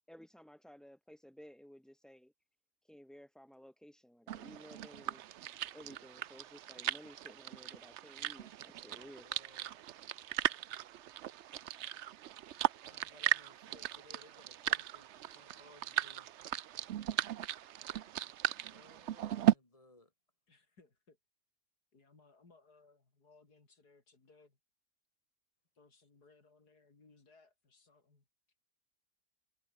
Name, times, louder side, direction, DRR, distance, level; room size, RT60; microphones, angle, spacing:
voice 1, 0.0-2.3 2.9-5.2 5.7-9.3, equal, ahead, 5.1 m, -55 dB
sound 1, 4.3-19.5, right 12 dB, 60° right, 0.7 m, -37 dB
voice 2, 8.9-9.8 12.8-16.4 18.6-20.1, left 2 dB, 20° left, 2.4 m, -62 dB
voice 3, 17.5-18.2 20.5-21.2 21.9-24.6 25.8-28.2, left 3 dB, 80° left, 4.4 m, -65 dB
omnidirectional pair, 1.7 m